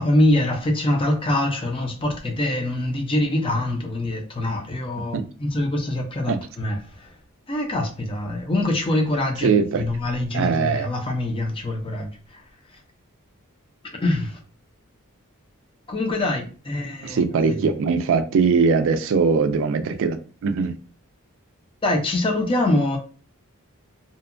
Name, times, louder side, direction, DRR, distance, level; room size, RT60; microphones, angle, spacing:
voice 1, 0.0-7.1 7.5-12.4 14.0-14.4 15.9-17.2 17.4-17.7 21.8-23.0, left 1 dB, 25° left, 0.5 m, -24 dB
voice 2, 9.4-9.9 10.3-10.9 17.0-20.8, right 5 dB, 60° right, 0.3 m, -21 dB
2.7 x 2.1 x 2.5 m
head